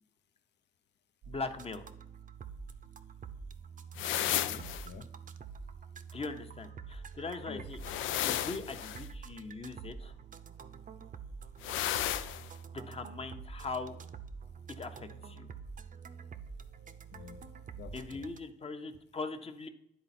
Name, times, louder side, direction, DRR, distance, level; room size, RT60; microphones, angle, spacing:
sound 1, 1.2-18.4, right 6 dB, 40° right, 0.6 m, -47 dB
voice 1, 1.3-1.9 6.1-7.8 8.1-10.1 12.7-14.0 14.7-15.5 17.9-19.7, left 3 dB, 30° left, 7 dB, 0.9 m, -41 dB
voice 2, 3.9-5.1 7.5-7.6 17.1-17.5 17.7-18.3, left 5 dB, 60° left, 9 dB, 0.8 m, -49 dB
sound 2, 4.0-4.9 7.8-9.1 11.6-12.5, left 12 dB, 80° left, 0.4 m, -33 dB
10.5 x 4.0 x 4.2 m, 0.77 s
cardioid pair, 90°, 20 cm